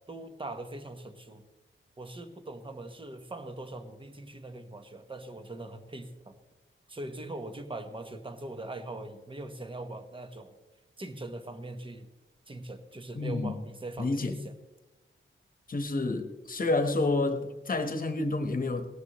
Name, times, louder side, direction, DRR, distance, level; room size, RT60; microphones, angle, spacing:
voice 1, 0.1-1.4 2.0-6.4 6.9-10.5 11.0-12.1 12.5-14.5, right 2 dB, 25° right, 7 dB, 1.1 m, -41 dB
voice 2, 13.1-13.6 14.0-14.4 15.7-18.9, left 2 dB, 40° left, 7 dB, 1.2 m, -29 dB
18.0 x 13.0 x 3.1 m, 1.1 s
wide cardioid pair, 125°, 21 cm